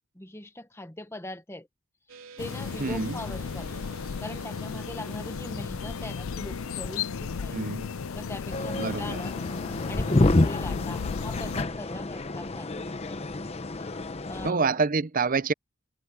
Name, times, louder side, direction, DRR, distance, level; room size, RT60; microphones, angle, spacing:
voice 1, 0.1-1.7 2.4-3.8 4.2-7.6 8.1-9.4 9.9-13.5 13.8-14.0 14.3-14.6, left 1 dB, 10° left, 1.2 m, -41 dB
sound 1, 2.1-8.8, right 4 dB, 75° right, 3.2 m, -49 dB
sound 2, 2.4-11.6, left 6 dB, 75° left, 0.5 m, -35 dB
voice 2, 2.8-3.2 7.5-7.9 8.8-9.2 14.4-15.5, right 4 dB, 40° right, 0.7 m, -26 dB
sound 3, 8.5-14.5, left 2 dB, 30° left, 0.8 m, -28 dB
head